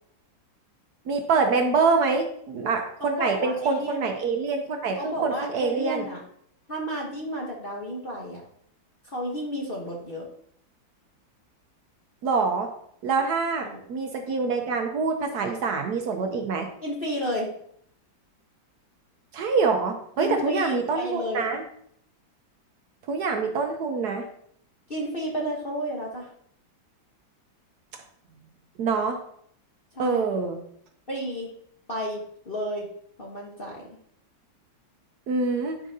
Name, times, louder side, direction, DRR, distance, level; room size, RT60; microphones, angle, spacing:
voice 1, 1.1-6.1 12.2-12.7 13.0-16.7 19.3-21.6 23.1-24.3 28.8-29.2 30.0-30.6 35.3-35.8, right 4 dB, 65° right, 4 dB, 1.1 m, -25 dB
voice 2, 3.0-4.1 5.0-6.2 6.7-8.4 9.0-10.3 13.6-13.8 16.8-17.5 20.2-21.4 24.9-26.3 29.9-30.2 31.1-31.5 31.9-32.9 33.2-34.0, equal, 40° left, -2 dB, 0.9 m, -32 dB
10.0 x 4.9 x 2.7 m, 0.67 s
omnidirectional pair, 2.1 m